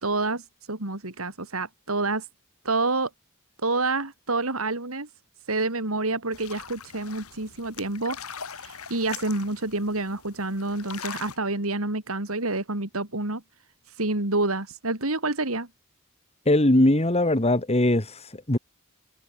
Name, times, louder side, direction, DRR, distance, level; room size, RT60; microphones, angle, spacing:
voice 1, 0.0-0.4 0.7-2.3 2.7-3.1 3.6-5.1 5.5-8.2 8.6-13.4 14.0-15.7, right 2 dB, 70° right, 3.5 m, -28 dB
sound 1, 6.3-11.4, left 7 dB, 85° left, 3.7 m, -41 dB
voice 2, 16.5-18.6, left 1 dB, 30° left, 2.3 m, -21 dB
head